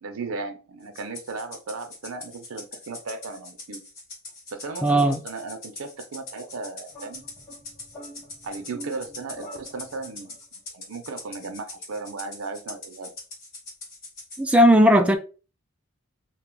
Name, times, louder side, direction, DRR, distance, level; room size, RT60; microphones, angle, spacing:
voice 1, 0.0-3.8 4.5-7.2 8.4-10.4 10.7-13.1, right 3 dB, 90° right, 0.6 m, -36 dB
Rattle (instrument), 0.9-14.4, left 2 dB, 45° left, 1.5 m, -42 dB
voice 2, 4.8-5.2 14.4-15.2, equal, 5° right, 0.3 m, -16 dB
sound 1, 6.9-10.4, equal, 10° left, 0.7 m, -45 dB
2.5 x 2.3 x 3.7 m
head